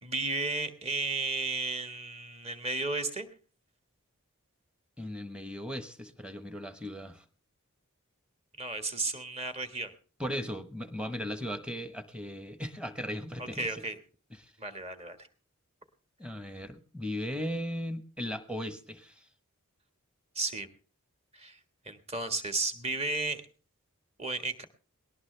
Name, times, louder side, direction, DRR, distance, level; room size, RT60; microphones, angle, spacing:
voice 1, 0.0-3.3 8.6-9.9 13.4-14.0 14.6-15.2 20.3-20.7 21.3-21.6 21.8-23.4 24.2-24.6, right 3 dB, 25° right, 8 dB, 1.6 m, -33 dB
voice 2, 5.0-7.2 10.2-13.8 14.4-14.5 16.2-19.3, equal, 5° right, 10 dB, 1.1 m, -37 dB
19.0 x 18.5 x 3.3 m, 0.38 s
head